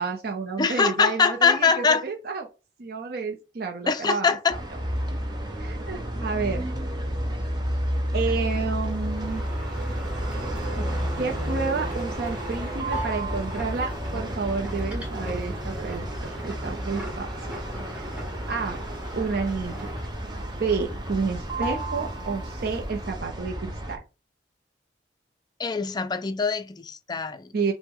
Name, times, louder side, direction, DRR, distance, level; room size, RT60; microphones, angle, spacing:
voice 1, 0.0-2.5 2.8-4.4 5.6-6.7 8.1-9.5 10.8-10.9 11.2-16.1 16.4-17.3 17.8-18.0 18.5-18.8 19.1-19.9 20.4-24.0 27.5-27.7, right 4 dB, 60° right, 0.6 m, -30 dB
voice 2, 0.6-2.0 3.9-4.6 25.6-27.5, left 5 dB, 25° left, 0.3 m, -23 dB
sound 1, 4.5-24.0, equal, 25° right, 0.8 m, -31 dB
sound 2, 8.9-20.3 20.7-21.2 21.5-22.8, right 2 dB, 10° right, 1.2 m, -37 dB
5.8 x 2.1 x 3.6 m
head